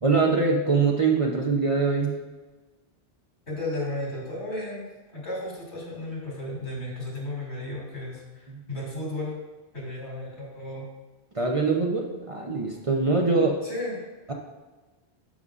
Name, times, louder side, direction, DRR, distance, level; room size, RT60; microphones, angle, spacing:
voice 1, 0.0-2.2 8.5-8.6 11.3-13.6 14.3-14.4, right 4 dB, 35° right, 0 dB, 0.7 m, -23 dB
voice 2, 3.5-4.9 5.1-9.3 9.7-10.9 13.6-14.0, left 1 dB, 85° left, -4 dB, 2.8 m, -34 dB
12.0 x 5.4 x 2.4 m, 1.2 s
omnidirectional pair, 1.1 m